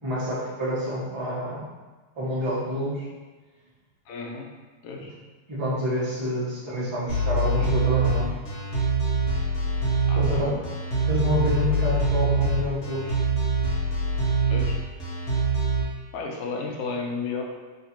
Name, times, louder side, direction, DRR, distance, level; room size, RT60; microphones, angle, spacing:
voice 1, 0.0-1.7 2.1-3.1 5.0-5.1 5.5-8.3 10.1-10.5 11.0-13.1, equal, 25° right, -8 dB, 0.6 m, -28 dB
voice 2, 4.1-4.5 4.8-5.1 10.1-10.6 14.5-14.8 16.1-17.4, left 4 dB, 75° left, 0 dB, 0.7 m, -33 dB
sound 1, 7.1-15.8, right 2 dB, 55° left, 1.5 m, -24 dB
3.2 x 2.6 x 4.4 m, 1.3 s
omnidirectional pair, 2.0 m